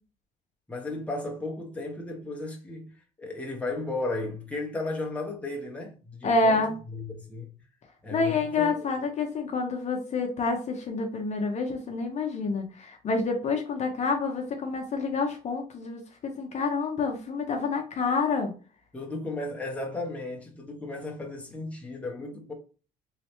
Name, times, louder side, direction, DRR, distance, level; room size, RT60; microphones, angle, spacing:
voice 1, 0.7-2.9 3.2-6.6 6.9-7.5 8.0-8.9 18.9-22.5, left 2 dB, 10° left, 0.9 m, -34 dB
voice 2, 6.2-6.8 8.1-18.5, left 3 dB, 40° left, 0.7 m, -28 dB
3.1 x 3.0 x 3.0 m
cardioid pair, 110°, 17 cm